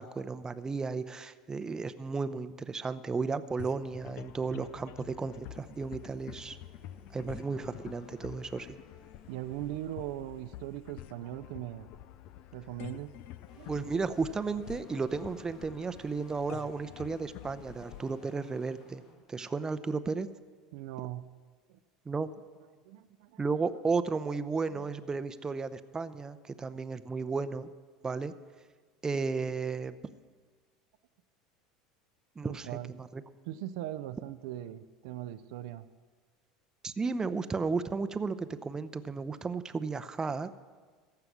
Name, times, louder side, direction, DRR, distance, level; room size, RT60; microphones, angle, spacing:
voice 1, 0.0-6.6 7.1-8.7 13.7-19.0 19.3-20.3 22.1-22.3 23.4-27.7 28.0-28.3 29.0-30.0 32.4-33.2 36.8-40.6, right 4 dB, 20° right, 12 dB, 0.7 m, -34 dB
sound 1, 3.6-19.2, left 13 dB, 55° left, 0.5 m, -48 dB
sound 2, 6.4-11.5 13.3-19.2, left 4 dB, 75° left, 2.4 m, -59 dB
voice 2, 9.3-11.9 12.5-13.1 13.5-13.7 14.3-14.4 20.7-21.3 21.7-21.8 22.9-23.5 24.7-24.8 32.4-32.9 33.5-35.9, right 14 dB, 70° right, 9 dB, 0.5 m, -40 dB
15.0 x 5.8 x 9.6 m, 1.5 s
hypercardioid pair, 80°, 3 cm